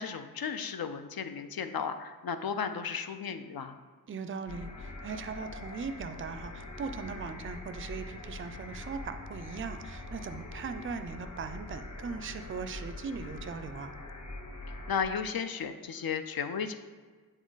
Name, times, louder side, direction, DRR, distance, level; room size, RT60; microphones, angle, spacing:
voice 1, 0.0-3.8 14.9-16.8, left 6 dB, 70° left, 9 dB, 0.5 m, -34 dB
voice 2, 4.1-13.9, right 5 dB, 35° right, 9 dB, 0.4 m, -39 dB
sound 1, 4.5-15.0, left 2 dB, 50° left, 0.9 m, -43 dB
7.3 x 3.8 x 4.0 m, 1.5 s
wide cardioid pair, 85°, 38 cm